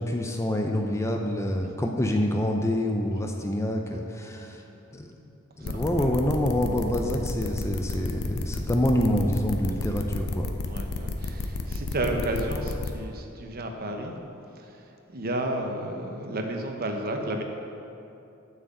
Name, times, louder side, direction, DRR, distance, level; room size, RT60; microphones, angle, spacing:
voice 1, 0.0-4.6 4.9-5.1 5.6-10.5, left 1 dB, 15° left, 2 dB, 0.6 m, -26 dB
sound 1, 5.6-12.9, left 3 dB, 90° left, 0.8 m, -32 dB
voice 2, 5.6-6.2 10.7-14.1 14.6-17.4, right 1 dB, 45° right, 3 dB, 1.0 m, -32 dB
7.7 x 6.2 x 7.9 m, 2.7 s
head